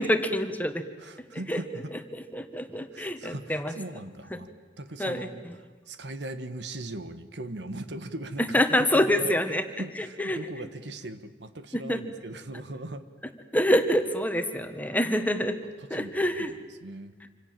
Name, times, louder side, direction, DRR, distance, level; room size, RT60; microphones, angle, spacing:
voice 1, 0.0-0.8 1.3-1.6 2.1-3.7 4.3-4.4 5.0-5.3 8.5-9.6 10.2-10.4 11.7-12.0 13.5-15.6 15.9-16.5, equal, 10° left, 7 dB, 1.4 m, -26 dB
voice 2, 1.0-1.9 2.9-4.5 4.8-9.3 9.8-13.0 14.8-15.0 15.9-16.5 16.8-17.2, right 1 dB, 75° right, 10 dB, 1.5 m, -39 dB
27.0 x 26.0 x 7.6 m, 1.3 s
head